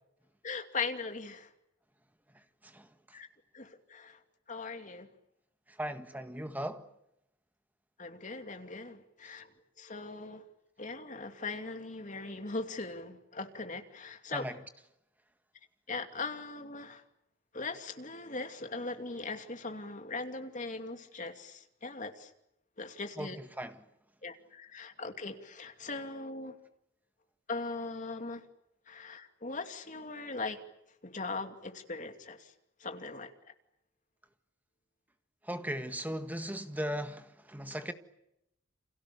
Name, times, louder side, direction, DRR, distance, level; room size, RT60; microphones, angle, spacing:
voice 1, 0.4-1.5 3.1-3.3 3.5-4.2 4.5-5.1 8.0-9.5 9.8-10.4 10.8-14.4 15.9-17.0 17.5-22.3 22.8-23.4 24.2-26.5 27.5-28.4 28.9-30.6 31.0-32.5 32.8-33.3, left 3 dB, 40° left, 2.7 m, -40 dB
voice 2, 5.8-6.8 14.3-14.5 23.2-23.3 23.6-23.7 35.5-37.9, equal, 10° right, 1.7 m, -37 dB
29.5 x 27.5 x 7.0 m
head